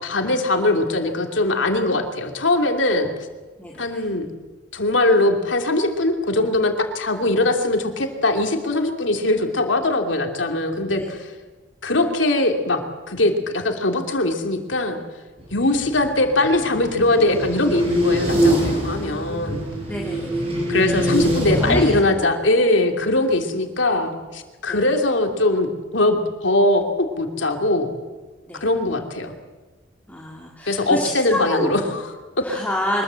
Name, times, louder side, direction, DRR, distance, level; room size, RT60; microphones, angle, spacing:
voice 1, 0.0-3.1 3.8-4.3 4.7-11.3 11.8-15.0 15.5-19.6 20.7-27.9 28.6-29.3 30.7-32.4, left 2 dB, 70° left, 4 dB, 3.0 m, -21 dB
voice 2, 3.6-4.0 10.9-11.1 19.9-20.5 20.9-21.0 21.6-22.3 24.7-24.8 28.5-28.6 30.1-31.7 32.4-33.0, left 1 dB, 10° left, -2 dB, 2.4 m, -28 dB
sound 1, 15.4-22.0, equal, 30° right, 6.3 m, -23 dB
24.0 x 21.0 x 7.8 m, 1.3 s
head